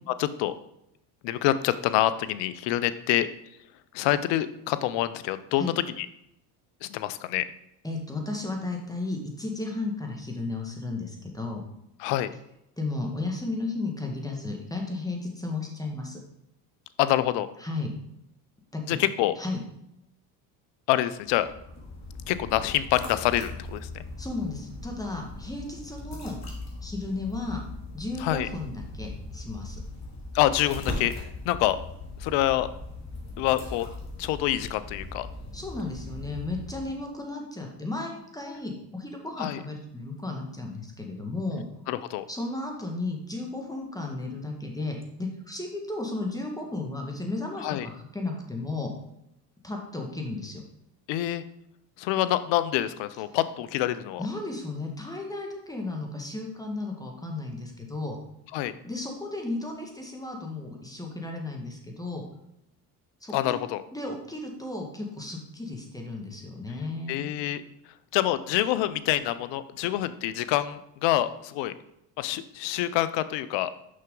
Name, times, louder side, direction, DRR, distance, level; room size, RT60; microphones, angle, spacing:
voice 1, 0.2-0.5 1.2-3.3 3.9-6.1 6.8-7.4 12.0-12.3 17.0-17.5 18.9-19.3 20.9-21.5 22.3-24.0 28.2-28.5 30.3-31.1 31.4-31.8 32.2-32.7 33.4-33.9 34.2-35.3 39.4-39.6 41.9-42.2 47.6-47.9 51.1-51.4 52.0-54.2 58.5-58.7 63.3-63.8 67.1-67.6 68.1-71.7 72.2-73.7, left 14 dB, 70° left, 14 dB, 0.7 m, -26 dB
voice 2, 7.8-11.6 12.8-16.2 17.6-17.9 18.7-19.0 19.4-19.6 24.2-26.4 26.8-27.6 27.9-29.8 35.5-41.6 42.3-48.9 49.6-50.6 54.2-58.2 58.8-62.2 63.2-63.5 63.9-67.3, left 2 dB, 10° left, 1 dB, 1.6 m, -34 dB
sound 1, 21.3-37.1, left 2 dB, 35° left, 2.3 m, -39 dB
6.3 x 5.7 x 3.8 m, 0.81 s
supercardioid pair, 80°, 45 cm